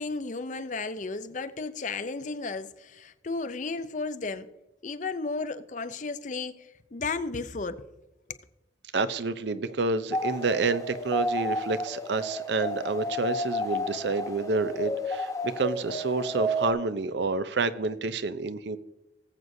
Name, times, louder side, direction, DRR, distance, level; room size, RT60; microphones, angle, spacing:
voice 1, 0.0-4.5 4.8-7.8, left 3 dB, 40° left, 0.5 m, -34 dB
voice 2, 8.9-18.8, right 3 dB, 65° right, 0.6 m, -29 dB
sound 1, 10.1-16.7, left 1 dB, 20° left, 1.1 m, -31 dB
19.5 x 7.7 x 2.7 m
head